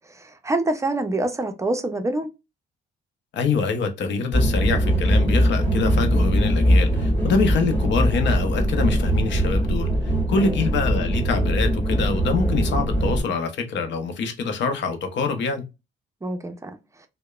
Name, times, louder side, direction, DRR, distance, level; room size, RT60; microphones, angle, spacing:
voice 1, 0.1-2.3 10.4-10.6 16.2-16.8, right 2 dB, 15° right, 0.5 m, -26 dB
voice 2, 3.3-15.6, left 4 dB, 65° left, 0.7 m, -25 dB
sound 1, 4.3-13.2, equal, 10° left, 1.6 m, -21 dB
2.8 x 2.1 x 2.3 m
cardioid pair, 90°, 20 cm